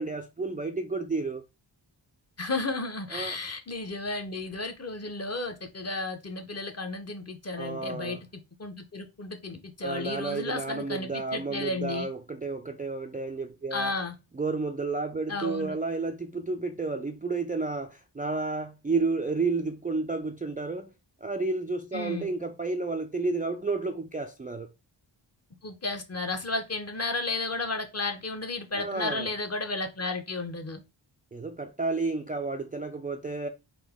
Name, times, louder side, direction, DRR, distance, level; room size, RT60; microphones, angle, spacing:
voice 1, 0.0-1.4 3.1-3.4 7.6-8.2 9.8-13.9 14.4-20.9 21.2-24.7 28.8-29.3 31.3-33.5, right 3 dB, 20° right, 0.3 m, -31 dB
voice 2, 2.4-12.1 13.7-14.2 15.3-15.8 21.9-22.3 25.6-30.8, left 2 dB, 30° left, 0.8 m, -33 dB
4.0 x 2.6 x 3.5 m
wide cardioid pair, 85°, 47 cm